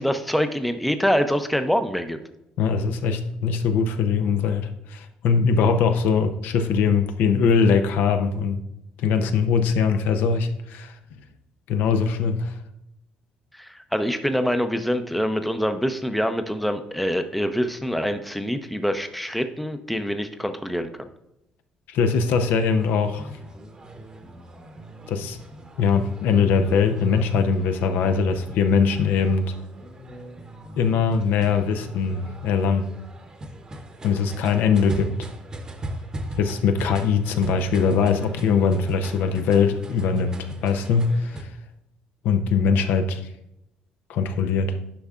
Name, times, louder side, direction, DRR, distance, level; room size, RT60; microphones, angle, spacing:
voice 1, 0.0-2.2 13.6-20.9, equal, ahead, 0.5 m, -25 dB
voice 2, 2.6-8.6 9.0-10.9 11.7-12.5 21.9-23.3 25.1-25.4 25.8-29.5 30.8-32.9 34.0-35.1 36.4-41.5 42.2-43.2 44.1-44.8, left 5 dB, 75° left, 0.6 m, -21 dB
sound 1, 22.1-41.4, right 1 dB, 20° right, 0.8 m, -39 dB
10.0 x 5.4 x 2.4 m
cardioid pair, 125°, 3 cm